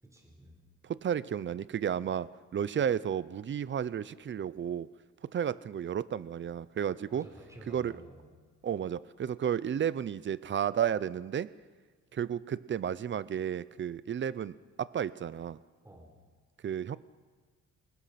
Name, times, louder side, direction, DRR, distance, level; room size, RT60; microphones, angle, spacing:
voice 1, 0.0-0.7 7.1-8.3 15.8-16.2, right 1 dB, 10° right, 1 dB, 4.3 m, -52 dB
voice 2, 0.8-4.9 5.3-7.3 7.7-7.9 8.6-11.5 12.1-15.6 16.6-17.0, right 8 dB, 40° right, 17 dB, 0.6 m, -32 dB
28.5 x 20.0 x 5.9 m, 1.5 s
cardioid pair, 130°, 31 cm